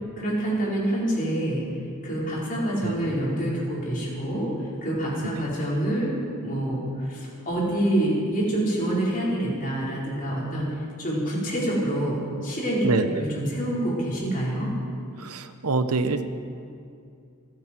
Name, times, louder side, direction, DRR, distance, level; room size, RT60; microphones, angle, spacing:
voice 1, 0.2-1.6 2.0-12.8 13.1-14.7, right 1 dB, 40° left, -5 dB, 4.5 m, -27 dB
voice 2, 12.8-13.2 15.2-16.3, right 3 dB, 80° right, 9 dB, 1.0 m, -25 dB
28.5 x 9.7 x 4.5 m, 2.4 s
head